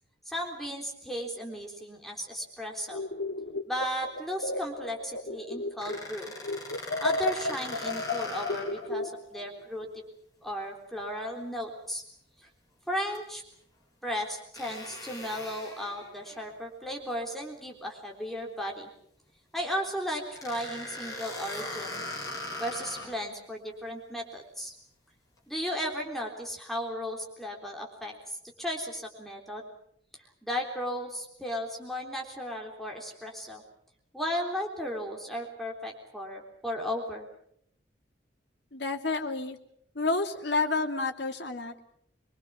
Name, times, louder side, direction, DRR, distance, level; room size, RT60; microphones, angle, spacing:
voice 1, 0.3-3.0 3.7-6.3 7.0-9.9 10.4-12.0 12.4-12.5 12.9-13.4 14.0-18.9 19.5-22.0 22.6-24.7 25.5-29.7 30.4-33.6 34.1-37.3, equal, ahead, 0 dB, 3.7 m, -35 dB
sound 1, 2.9-6.1 6.4-9.5, left 2 dB, 80° left, 2.1 m, -33 dB
sound 2, 5.8-8.9 9.3-9.4 13.1-13.2 14.5-16.4 20.4-23.2, left 2 dB, 20° left, 7.3 m, -40 dB
voice 2, 38.7-39.6 39.9-41.7, left 3 dB, 60° left, 3 dB, 2.6 m, -29 dB
24.5 x 23.0 x 7.2 m, 0.69 s
head